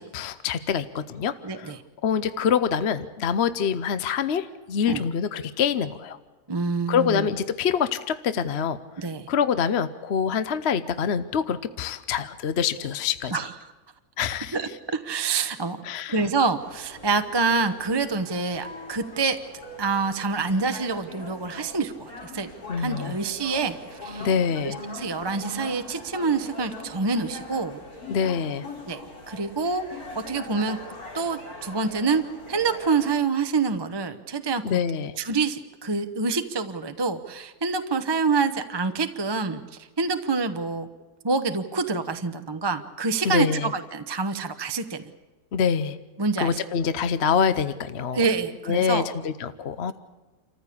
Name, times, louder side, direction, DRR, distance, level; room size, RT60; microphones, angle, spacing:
voice 1, 0.0-1.7 2.0-6.2 6.9-8.8 9.3-13.3 14.2-14.6 15.8-16.2 22.7-23.2 24.2-24.8 28.1-28.7 34.6-35.1 43.2-43.7 45.5-46.0 46.4-48.2 48.7-49.9, left 7 dB, 50° left, 13 dB, 0.9 m, -25 dB
voice 2, 1.4-1.8 4.9-5.0 6.5-7.3 9.0-9.3 13.3-13.5 14.5-19.4 19.8-22.5 22.8-24.3 24.6-27.8 28.9-29.0 29.3-30.8 31.1-32.2 32.5-34.6 35.2-39.6 40.0-40.9 41.2-43.5 43.7-45.0 46.2-46.6 48.1-49.1, right 4 dB, 20° right, 8 dB, 0.8 m, -26 dB
sound 1, 16.6-33.1, left 2 dB, 65° left, 4.2 m, -41 dB
28.0 x 14.5 x 8.5 m, 1.3 s
omnidirectional pair, 1.7 m